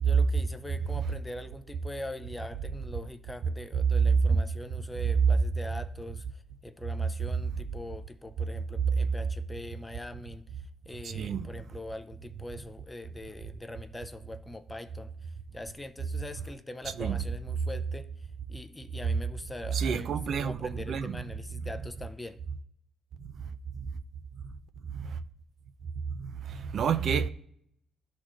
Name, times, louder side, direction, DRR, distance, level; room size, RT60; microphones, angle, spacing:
voice 1, 0.0-10.4 10.9-18.1 18.5-22.4, left 1 dB, 15° left, 0.5 m, -42 dB
voice 2, 11.0-11.5 17.0-17.2 19.7-21.1 25.0-25.1 26.1-27.3, right 7 dB, 65° right, 0.5 m, -30 dB
12.5 x 4.3 x 3.0 m
cardioid pair, 90°, 0 cm